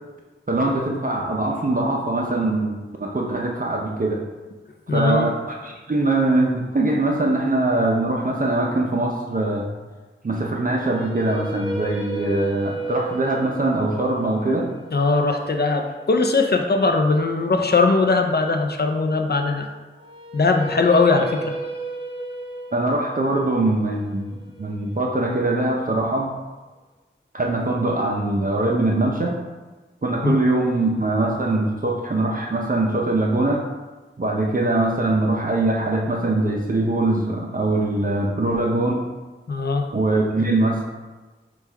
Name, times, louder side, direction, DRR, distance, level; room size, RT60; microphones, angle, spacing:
voice 1, 0.5-4.2 4.9-9.7 10.2-14.7 22.7-26.3 27.3-29.4 30.0-33.6 34.2-39.1 39.9-40.8, right 2 dB, 40° right, -1 dB, 0.6 m, -22 dB
voice 2, 4.9-5.3 14.9-19.7 20.3-21.6 30.2-30.4 39.5-39.9, left 3 dB, 50° left, 5 dB, 0.4 m, -20 dB
sound 1, 10.6-16.7 19.9-26.0, right 3 dB, 25° right, 1.0 m, -34 dB
5.9 x 2.3 x 3.4 m, 1.3 s
wide cardioid pair, 45°, 21 cm